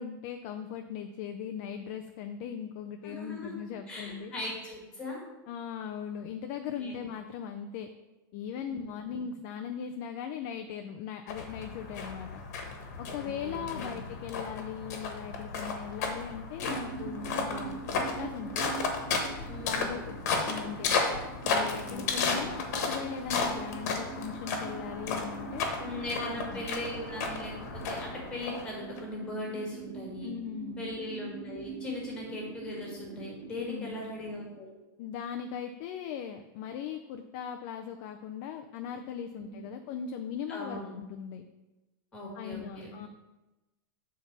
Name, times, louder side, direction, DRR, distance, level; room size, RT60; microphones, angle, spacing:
voice 1, 0.0-4.3 5.5-7.9 8.3-12.4 13.0-18.7 19.6-20.9 21.5-25.6 26.2-26.7 30.2-30.9 33.6-34.0 35.0-41.4 42.3-43.1, left 8 dB, 30° left, 5 dB, 0.4 m, -39 dB
voice 2, 3.0-3.5 3.9-5.2 6.8-6.9 8.7-9.2 13.1-13.9 19.5-19.9 21.8-22.5 25.8-30.3 30.8-34.7 39.3-39.7 40.5-40.9 42.1-43.1, left 1 dB, 10° left, -2 dB, 1.7 m, -39 dB
sound 1, 11.3-29.0, left 4 dB, 45° left, 1.2 m, -34 dB
sound 2, 16.6-34.6, right 7 dB, 35° right, 0.5 m, -44 dB
7.9 x 4.1 x 6.0 m, 1.1 s
supercardioid pair, 175°, 11 cm